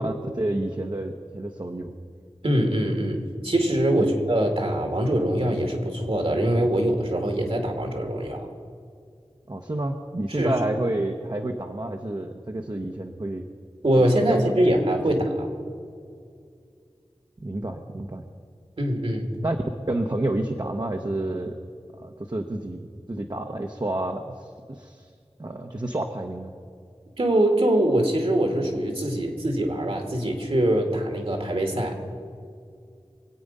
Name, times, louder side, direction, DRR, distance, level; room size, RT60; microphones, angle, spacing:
voice 1, 0.0-1.9 4.0-4.2 9.5-13.4 14.0-14.4 15.1-15.2 17.4-18.2 19.4-19.6 19.9-21.6 22.0-22.8 23.1-25.1 25.4-26.5, right 1 dB, 40° right, 2 dB, 1.0 m, -29 dB
voice 2, 2.4-8.5 10.3-10.6 13.8-15.5 18.8-19.3 27.2-32.0, right 1 dB, 65° right, 3 dB, 2.3 m, -23 dB
24.0 x 8.6 x 5.4 m, 2.3 s
wide cardioid pair, 45°, 10 cm